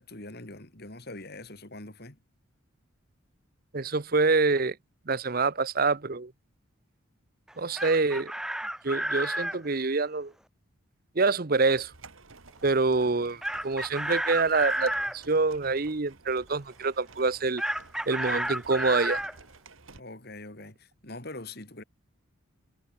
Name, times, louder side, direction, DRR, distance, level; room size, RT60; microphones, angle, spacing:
voice 1, 0.0-2.2 13.0-13.2 19.9-21.8, left 2 dB, 45° left, 3.1 m, -43 dB
voice 2, 3.7-4.8 5.1-6.3 7.6-8.3 8.8-10.3 11.2-11.9 12.6-17.6 18.1-19.2, right 3 dB, 45° right, 0.8 m, -26 dB
Chicken rooster, 7.5-9.6 13.4-15.2 17.6-19.3, right 1 dB, ahead, 0.4 m, -31 dB
sound 1, 11.6-20.0, right 4 dB, 70° right, 2.3 m, -53 dB
head